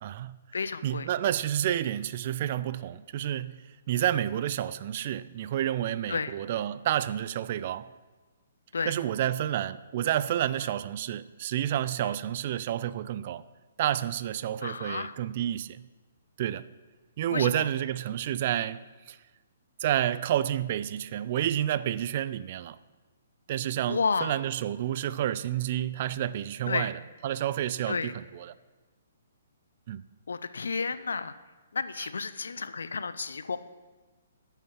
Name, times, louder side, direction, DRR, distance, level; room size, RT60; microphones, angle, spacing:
voice 1, 0.0-0.4 0.8-3.6 3.9-7.9 8.9-13.4 13.8-15.8 16.4-16.7 17.2-18.8 19.1-19.2 19.8-22.8 23.5-28.5 29.9-30.0, right 11 dB, 45° right, 0.3 m, -30 dB
voice 2, 0.5-1.1 6.1-6.3 8.7-8.9 10.6-10.7 12.0-12.1 14.6-15.1 17.3-17.7 23.9-24.4 26.7-26.9 27.9-28.1 30.3-31.3 31.7-33.6, left 5 dB, 75° left, 0.5 m, -31 dB
9.1 x 5.6 x 5.8 m
hypercardioid pair, 130°, 0 cm